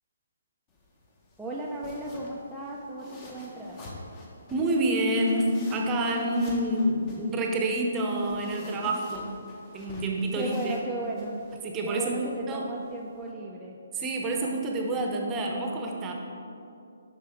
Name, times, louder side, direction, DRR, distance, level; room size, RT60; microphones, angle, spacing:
sound 1, 0.7-13.3, left 1 dB, 25° left, 1.3 m, -48 dB
voice 1, 1.4-3.8 8.7-9.1 10.3-11.4 11.8-13.8, right 2 dB, ahead, -8 dB, 0.6 m, -36 dB
voice 2, 4.5-9.3 9.7-10.7 11.6-12.7 13.9-16.1, right 1 dB, 20° right, 1 dB, 0.9 m, -28 dB
9.7 x 5.9 x 3.6 m, 2.7 s
hypercardioid pair, 145°, 0 cm